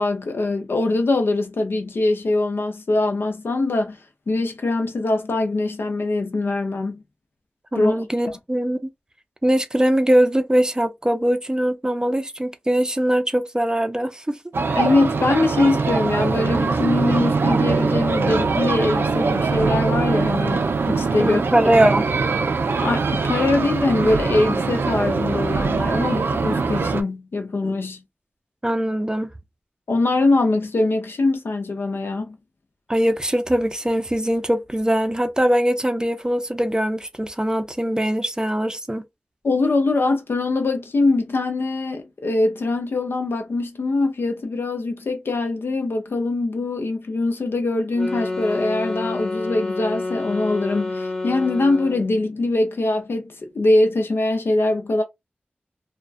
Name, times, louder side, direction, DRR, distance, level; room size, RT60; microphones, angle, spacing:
voice 1, 0.0-4.0 4.3-7.0 7.7-8.0 14.7-21.4 22.8-28.0 29.9-32.4 39.4-55.0, left 2 dB, 80° left, 0.6 m, -22 dB
voice 2, 7.7-8.9 9.4-14.4 21.2-22.1 28.6-29.3 32.9-39.0, right 1 dB, 20° right, 0.5 m, -21 dB
sound 1, 14.5-27.0, right 4 dB, 80° right, 0.3 m, -22 dB
sound 2, 47.9-52.2, left 2 dB, 15° left, 0.8 m, -28 dB
2.3 x 2.1 x 2.4 m
cardioid pair, 40°, 4 cm